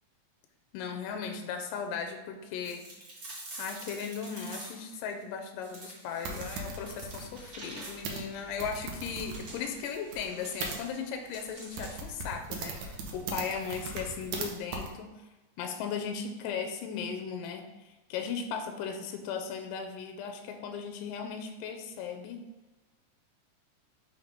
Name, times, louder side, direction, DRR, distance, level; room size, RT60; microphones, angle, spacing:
voice 1, 0.7-2.9 3.6-15.1 15.6-22.4, left 6 dB, 80° left, 4 dB, 2.2 m, -37 dB
sound 1, 2.6-5.0 5.6-8.2 9.1-12.1, right 2 dB, 90° right, 0.8 m, -47 dB
sound 2, 6.2-10.8 11.4-11.5 11.8-14.5 14.7-14.9, right 4 dB, 70° right, 2.0 m, -39 dB
5.7 x 3.6 x 5.0 m, 1.1 s
omnidirectional pair, 4.0 m